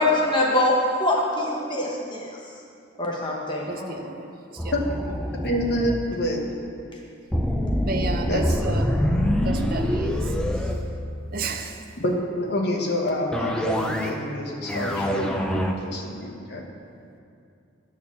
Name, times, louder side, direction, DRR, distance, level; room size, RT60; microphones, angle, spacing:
voice 1, 0.0-2.3 3.0-4.0, left 1 dB, 25° left, -2 dB, 0.8 m, -23 dB
voice 2, 3.7-4.3 4.6-4.7 7.8-8.9 9.4-10.2 11.3-11.8, right 3 dB, 45° right, 6 dB, 0.6 m, -31 dB
sound 1, 4.6-6.0 7.3-11.5 13.3-14.3 14.6-15.7, equal, 5° left, 0.4 m, -25 dB
voice 3, 5.4-6.5 8.3-8.9 12.0-15.4 15.8-16.7, left 1 dB, 55° left, 0 dB, 1.1 m, -27 dB
9.6 x 4.3 x 7.1 m, 2.5 s
head